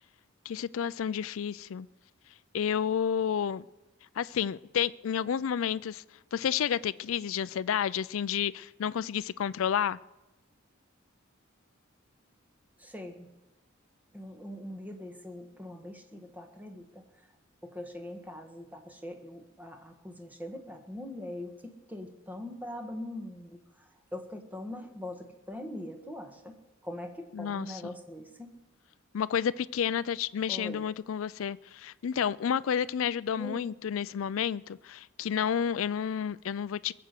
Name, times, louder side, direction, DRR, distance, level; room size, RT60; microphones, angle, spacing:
voice 1, 0.5-1.9 2.5-3.6 4.2-6.0 6.3-10.0 27.3-27.9 29.1-36.9, left 8 dB, 70° left, 0.4 m, -30 dB
voice 2, 12.8-13.3 14.1-17.0 17.6-23.6 24.1-26.6 26.8-28.5 30.5-30.8 33.3-33.6, left 1 dB, 10° right, 1.7 m, -42 dB
21.5 x 7.8 x 6.8 m
head